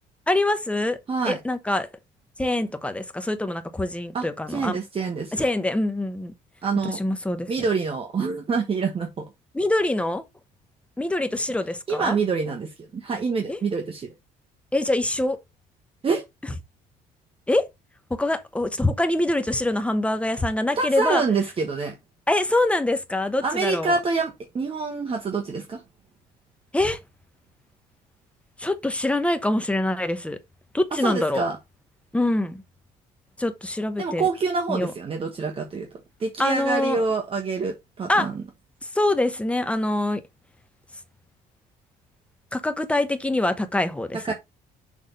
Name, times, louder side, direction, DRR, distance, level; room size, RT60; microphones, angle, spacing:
voice 1, 0.3-1.0 1.2-1.9 2.4-4.8 5.3-6.3 6.8-7.5 9.5-10.2 11.0-12.2 13.5-13.6 14.7-15.4 17.5-17.7 18.1-21.2 22.3-23.9 26.7-27.0 28.6-30.4 30.7-31.4 32.1-32.6 33.4-34.3 34.7-34.9 36.4-37.0 38.1-38.3 38.8-40.2 42.5-44.3, left 1 dB, 5° left, 1.0 m, -24 dB
voice 2, 4.1-5.4 6.6-7.0 7.5-9.3 11.9-14.1 16.0-16.2 20.8-22.0 23.4-25.8 31.0-31.6 34.0-35.9 36.2-38.3 44.2-44.3, right 4 dB, 35° right, 1.3 m, -26 dB
6.5 x 3.5 x 5.5 m
cardioid pair, 110°, 17 cm